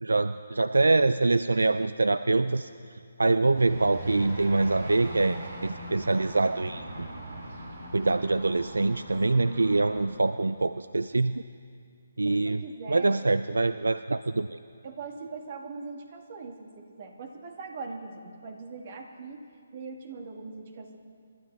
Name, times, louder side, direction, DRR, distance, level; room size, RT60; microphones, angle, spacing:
voice 1, 0.0-2.7 3.2-7.1 7.9-11.4 12.2-12.6 12.9-14.6, right 3 dB, 80° right, 13 dB, 0.4 m, -25 dB
sound 1, 3.5-10.1, right 2 dB, 60° right, 2.8 m, -40 dB
voice 2, 9.3-9.9 12.2-13.2 14.8-19.5 19.7-21.0, right 4 dB, 45° right, 3 dB, 1.7 m, -41 dB
28.5 x 12.0 x 3.3 m, 2.3 s
figure-of-eight pair, 145°, 0 cm